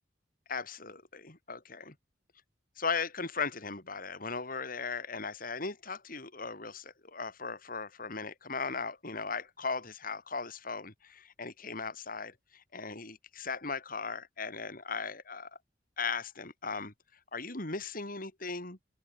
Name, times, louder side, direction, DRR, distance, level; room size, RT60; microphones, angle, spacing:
voice 1, 0.5-1.9 2.8-15.5 16.0-16.9 17.3-18.8, left 4 dB, 50° left, 4.1 m, -37 dB
open air
head